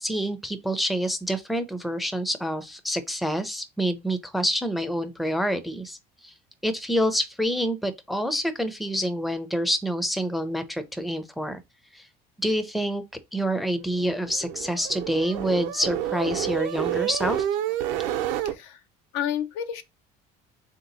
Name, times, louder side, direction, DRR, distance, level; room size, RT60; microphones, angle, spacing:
voice 1, 0.0-6.0 6.2-6.3 6.6-11.6 11.9-12.1 12.4-13.0 13.3-17.5, equal, ahead, 0.4 m, -27 dB
sound 1, 13.8-18.5, right 11 dB, 80° right, 0.6 m, -29 dB
voice 2, 18.4-18.8 19.1-19.8, left 9 dB, 85° left, 0.6 m, -30 dB
3.5 x 2.8 x 3.9 m
cardioid pair, 135°, 20 cm